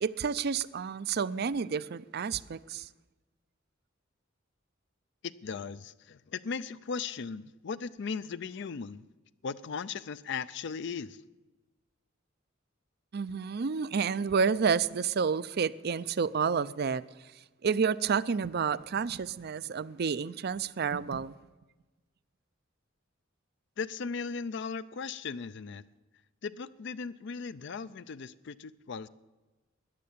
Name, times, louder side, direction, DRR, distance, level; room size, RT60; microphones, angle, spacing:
voice 1, 0.0-2.9 13.1-17.0 17.6-21.3, right 6 dB, 50° right, 0.5 m, -30 dB
voice 2, 5.2-9.0 9.4-11.2 23.8-25.8 26.4-29.1, left 5 dB, 60° left, 0.5 m, -37 dB
13.5 x 10.5 x 8.6 m
head